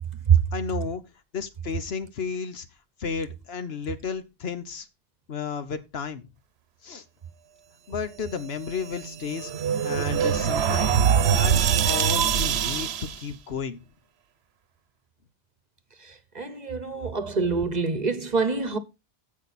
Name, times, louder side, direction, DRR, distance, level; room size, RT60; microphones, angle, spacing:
voice 1, 0.5-1.0 1.3-2.7 3.0-4.9 5.3-6.3 6.8-7.0 7.9-9.5 9.8-11.0 11.2-13.8, left 6 dB, 75° left, 1.2 m, -33 dB
sound 1, 8.7-13.2, right 8 dB, 80° right, 1.0 m, -23 dB
voice 2, 16.0-18.8, right 6 dB, 45° right, 1.0 m, -24 dB
15.0 x 5.2 x 4.2 m
omnidirectional pair, 1.1 m